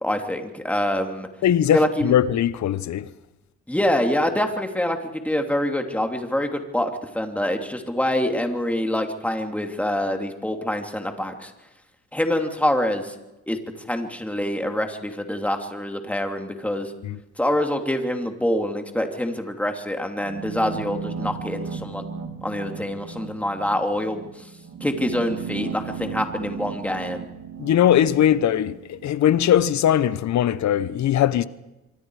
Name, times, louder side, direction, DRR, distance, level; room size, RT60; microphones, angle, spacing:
voice 1, 0.0-1.3 1.7-2.1 3.7-5.0 5.2-11.5 12.1-13.1 13.5-13.6 13.9-16.9 17.4-22.0 22.4-24.4 24.8-27.2, left 1 dB, 5° left, 2.9 m, -25 dB
voice 2, 1.4-3.1 17.0-17.2 27.6-31.4, left 10 dB, 65° left, 1.0 m, -20 dB
sound 1, 20.2-29.2, right 6 dB, 70° right, 3.3 m, -35 dB
25.0 x 24.5 x 4.9 m
cardioid pair, 90°, 30 cm